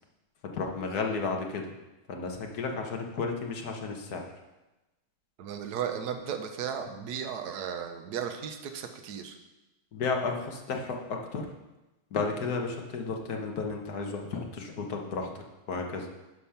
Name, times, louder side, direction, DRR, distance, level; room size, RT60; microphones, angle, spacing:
voice 1, 0.5-1.7 2.1-4.2 9.9-11.5 12.1-16.1, left 4 dB, 55° left, 2 dB, 1.6 m, -33 dB
voice 2, 5.4-9.4, right 8 dB, 60° right, 6 dB, 1.3 m, -35 dB
11.5 x 5.2 x 5.8 m, 1.0 s
omnidirectional pair, 2.3 m